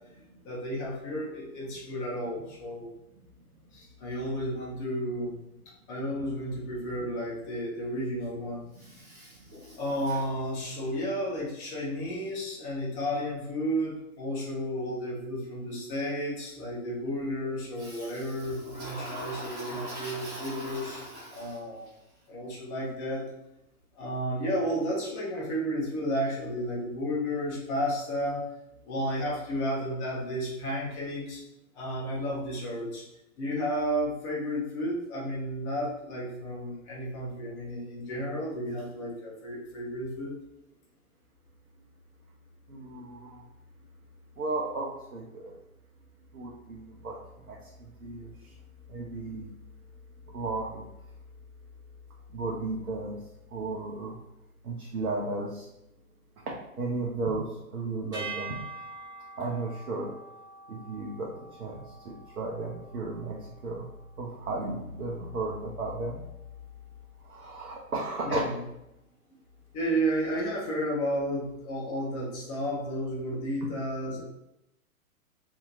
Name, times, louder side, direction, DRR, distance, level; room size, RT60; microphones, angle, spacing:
voice 1, 0.1-2.9 3.7-5.4 5.9-8.7 9.8-21.0 21.3-21.9 22.3-23.3 24.0-28.4 28.8-31.4 31.7-33.0 33.4-40.4 68.2-68.6 69.7-74.2, equal, 20° left, -5 dB, 0.8 m, -32 dB
Toilet flush, 8.7-11.0 17.7-21.9, equal, 25° right, 1.0 m, -43 dB
voice 2, 42.7-43.4 44.4-45.5 46.3-47.2 47.5-47.6 48.0-48.3 48.9-49.5 50.3-50.8 52.3-53.2 53.5-54.1 54.6-55.7 56.5-58.6 59.4-60.1 60.7-61.3 61.6-63.4 63.6-63.8 64.2-66.2 67.3-68.5, right 3 dB, 75° right, -2 dB, 0.7 m, -34 dB
sound 1, 58.1-64.5, right 4 dB, 10° right, 1.2 m, -45 dB
2.7 x 2.7 x 2.4 m, 0.85 s
figure-of-eight pair, 115°, 43 cm